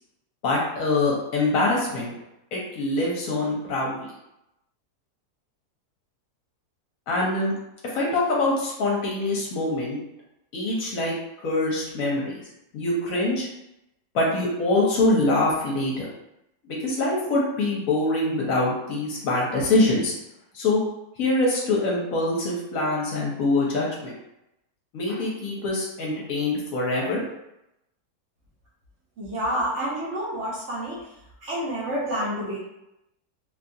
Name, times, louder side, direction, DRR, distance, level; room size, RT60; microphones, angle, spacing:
voice 1, 0.4-2.1 2.5-4.1 7.1-7.5 7.9-10.0 10.5-11.1 11.4-12.4 12.7-13.5 14.1-16.1 16.7-20.1 20.5-20.8 21.2-24.1 24.9-27.2, left 2 dB, 65° left, -3 dB, 1.0 m, -24 dB
voice 2, 29.2-31.0 31.4-32.6, equal, 55° right, -7 dB, 1.0 m, -28 dB
2.9 x 2.3 x 2.6 m, 0.87 s
omnidirectional pair, 1.7 m